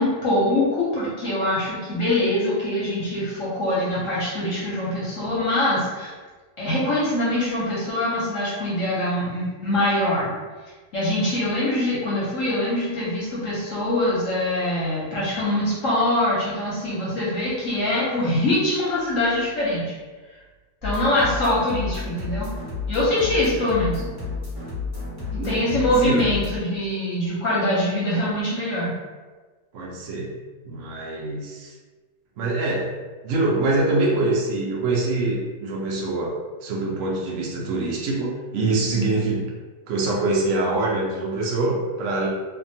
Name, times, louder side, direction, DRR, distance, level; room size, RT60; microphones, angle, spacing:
voice 1, 0.0-6.1 6.6-10.3 10.9-19.9 20.8-22.5 22.9-24.0 25.3-28.9, left 1 dB, 65° left, -7 dB, 0.8 m, -23 dB
sound 1, 20.8-26.5, left 4 dB, 20° right, 1.0 m, -31 dB
voice 2, 25.4-26.2 29.7-30.3 30.6-31.7 32.4-32.9 33.2-36.3 36.6-39.4 39.9-42.3, right 2 dB, 85° right, -3 dB, 0.6 m, -24 dB
2.7 x 2.3 x 2.6 m, 1.3 s
omnidirectional pair, 1.9 m